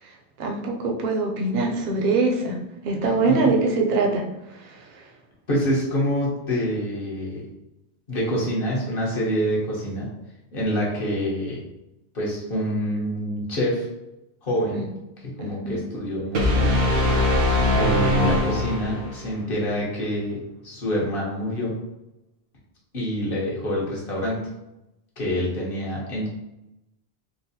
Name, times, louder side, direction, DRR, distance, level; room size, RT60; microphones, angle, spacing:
voice 1, 0.0-2.6 2.8-5.1 14.7-14.9 15.4-15.8, right 3 dB, 55° right, 0 dB, 0.6 m, -24 dB
voice 2, 5.5-7.4 8.1-10.1 10.5-11.6 12.1-13.9 14.4-14.8 15.2-16.8 17.7-21.7 22.9-24.4 25.2-26.3, equal, 60° left, -4 dB, 1.2 m, -26 dB
sound 1, 16.3-19.3, left 1 dB, 70° right, 1.0 m, -21 dB
3.8 x 2.5 x 2.7 m, 0.91 s
omnidirectional pair, 1.1 m